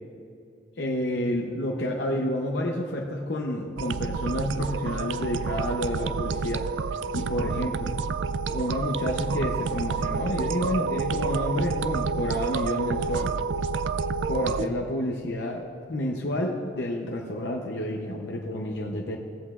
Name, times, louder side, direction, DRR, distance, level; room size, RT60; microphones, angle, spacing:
voice 1, 0.8-6.7 7.1-7.9 8.5-13.3 14.3-15.6 15.9-19.2, left 1 dB, 70° left, 0 dB, 0.7 m, -29 dB
sound 1, 3.8-14.7, right 5 dB, 80° right, 0.3 m, -29 dB
17.0 x 7.9 x 2.4 m, 2.5 s
head